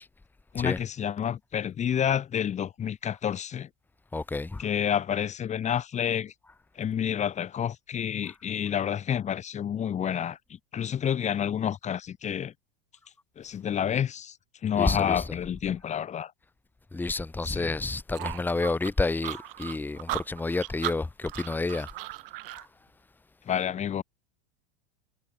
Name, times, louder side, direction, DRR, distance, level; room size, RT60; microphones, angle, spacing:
voice 1, 0.5-3.7 4.6-6.3 6.8-12.5 13.4-14.4 14.6-16.3 17.4-17.7 23.5-24.0, left 9 dB, 25° left, 5.5 m, -29 dB
voice 2, 4.1-4.6 14.8-15.2 16.9-21.9, left 3 dB, 5° left, 1.9 m, -29 dB
sound 1, 18.1-22.7, right 18 dB, 70° right, 5.4 m, -36 dB
supercardioid pair, 145°, 29 cm